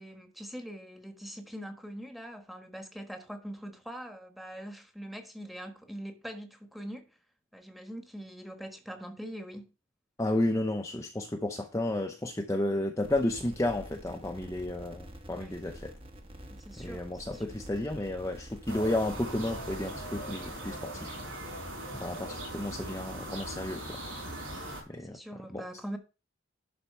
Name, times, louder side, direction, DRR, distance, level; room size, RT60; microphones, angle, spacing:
voice 1, 0.0-7.0 7.5-9.7 15.3-15.5 16.5-17.5 24.9-26.0, equal, ahead, 1.3 m, -43 dB
voice 2, 10.2-15.9 16.8-21.5 22.0-24.0 24.4-24.5 24.9-25.2 25.5-25.6, left 1 dB, 15° left, 0.7 m, -32 dB
sound 1, 13.0-20.8, equal, 30° right, 1.3 m, -47 dB
sound 2, 18.7-24.8, right 1 dB, 75° right, 5.0 m, -40 dB
11.5 x 4.3 x 5.4 m
head